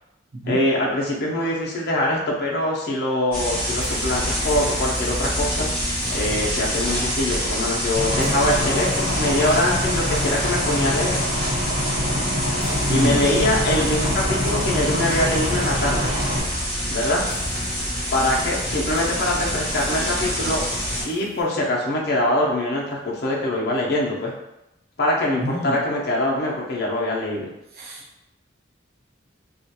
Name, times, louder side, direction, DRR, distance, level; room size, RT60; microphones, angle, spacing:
voice 1, 0.5-5.7 6.1-11.2 12.9-16.1 16.9-17.3 18.1-20.6 21.0-24.3 25.0-27.5, left 1 dB, 50° left, -3 dB, 0.5 m, -23 dB
sound 1, 3.3-21.0, equal, 10° left, 1.0 m, -26 dB
sound 2, 3.8-21.4, left 1 dB, 15° right, 1.1 m, -40 dB
Aircraft / Engine, 7.9-16.4, left 1 dB, 80° right, 1.3 m, -26 dB
voice 2, 12.9-13.3 25.4-25.8 27.7-28.1, right 1 dB, 50° right, -3 dB, 0.5 m, -26 dB
2.4 x 2.2 x 2.7 m, 0.91 s
head